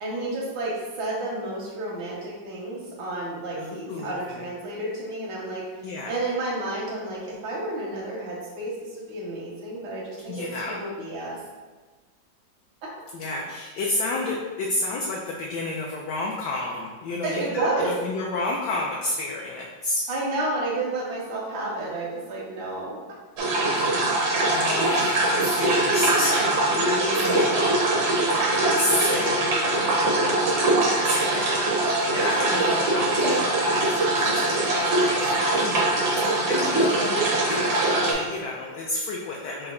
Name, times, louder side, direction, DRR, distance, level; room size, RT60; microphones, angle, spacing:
voice 1, 0.0-11.4 12.8-12.9 17.2-17.9 20.1-23.0 32.5-32.7, right 2 dB, 85° right, -5 dB, 1.6 m, -31 dB
voice 2, 3.5-4.4 5.8-6.2 10.3-10.8 13.1-20.0 23.8-27.8 28.2-35.9 36.2-39.7, left 2 dB, 75° left, -2 dB, 1.0 m, -31 dB
sound 1, 23.4-38.1, right 2 dB, 70° right, 0.6 m, -22 dB
5.6 x 2.1 x 3.6 m, 1.4 s
omnidirectional pair, 2.2 m